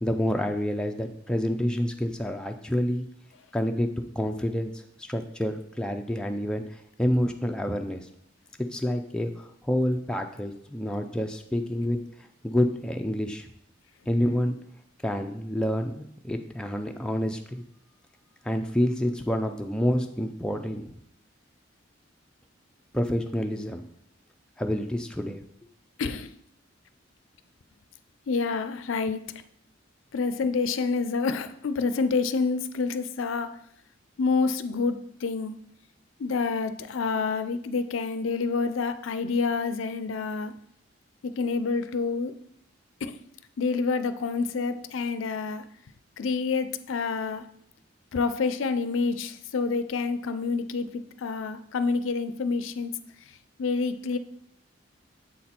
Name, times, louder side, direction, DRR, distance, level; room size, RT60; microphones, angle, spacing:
voice 1, 0.0-3.1 3.5-3.9 4.2-8.1 8.7-12.0 12.4-13.5 14.1-14.6 15.0-17.6 18.4-20.9 22.9-23.8 24.6-25.4, equal, 5° left, 3 dB, 0.4 m, -28 dB
voice 2, 26.0-26.3 28.3-29.2 30.1-33.6 34.2-35.6 36.2-40.5 41.2-42.3 43.0-43.2 43.6-45.6 46.2-47.4 48.1-52.9 53.6-54.2, left 4 dB, 80° left, 11 dB, 0.4 m, -28 dB
7.4 x 4.1 x 4.3 m, 0.69 s
head